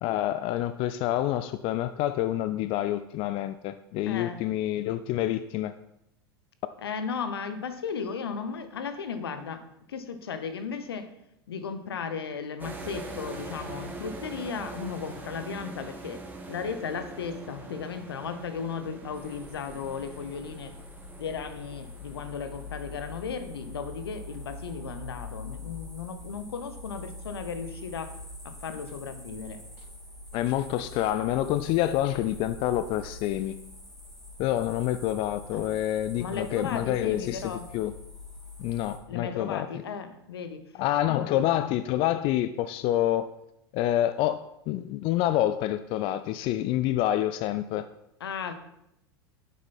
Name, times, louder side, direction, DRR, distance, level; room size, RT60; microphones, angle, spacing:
voice 1, 0.0-5.7 30.3-33.6 34.4-37.4 37.7-37.9 38.6-39.7 40.7-43.3 43.7-44.4 44.7-47.8, left 13 dB, 45° left, 12 dB, 0.4 m, -27 dB
voice 2, 4.1-4.4 6.8-9.6 9.9-11.1 11.5-16.2 16.5-20.7 21.2-28.1 28.4-29.6 35.5-35.7 36.2-37.7 39.1-40.6 41.1-41.4 48.2-48.5, left 6 dB, 75° left, 10 dB, 1.0 m, -35 dB
sound 1, 12.6-24.7, right 3 dB, 15° right, 1.8 m, -43 dB
sound 2, 19.1-39.0, left 2 dB, 5° left, 2.8 m, -44 dB
9.5 x 7.5 x 4.2 m, 0.81 s
figure-of-eight pair, 85°, 13 cm